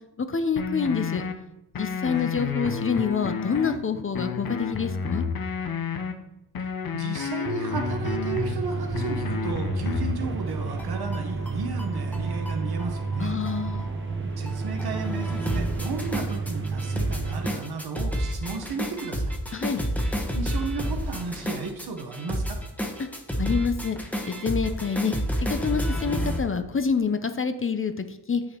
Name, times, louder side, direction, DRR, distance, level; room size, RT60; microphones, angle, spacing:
voice 1, 0.3-1.2 1.8-5.2 13.2-13.9 19.5-19.9 23.4-24.0 24.3-25.1 25.4-28.4, left 5 dB, 30° left, 9 dB, 0.6 m, -27 dB
sound 1, 0.6-1.3 1.7-3.8 4.1-6.1 6.5-8.6 8.9-10.2, left 6 dB, 60° left, 0.8 m, -30 dB
voice 2, 6.9-13.4 14.4-19.3 20.3-22.6, right 4 dB, 70° right, 5 dB, 1.2 m, -34 dB
sound 2, 7.7-17.6, right 4 dB, 30° right, 0.7 m, -31 dB
sound 3, 10.5-26.4, equal, 5° left, 1.0 m, -31 dB
7.8 x 6.4 x 3.0 m, 0.94 s
cardioid pair, 60°, 40 cm